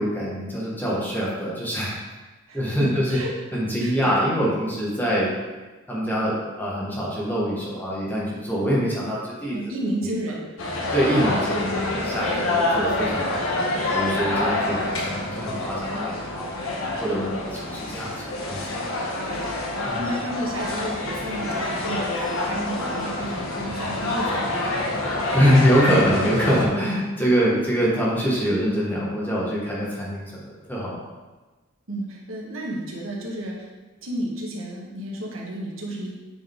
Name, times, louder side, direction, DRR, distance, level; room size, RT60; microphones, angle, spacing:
voice 1, 0.0-1.9 2.5-3.2 3.5-5.3 5.9-9.6 10.9-13.4 13.9-16.5 16.8-18.7 19.9-20.0 25.3-31.1, equal, 10° left, -6 dB, 1.8 m, -24 dB
voice 2, 2.5-3.3 3.8-4.3 9.5-10.9 19.1-19.5 19.8-22.1 22.4-24.7 31.9-33.7 34.0-36.1, right 1 dB, 75° right, -2 dB, 1.6 m, -32 dB
sound 1, 10.6-26.6, left 2 dB, 80° left, 1.4 m, -27 dB
9.0 x 5.3 x 3.7 m, 1.2 s
head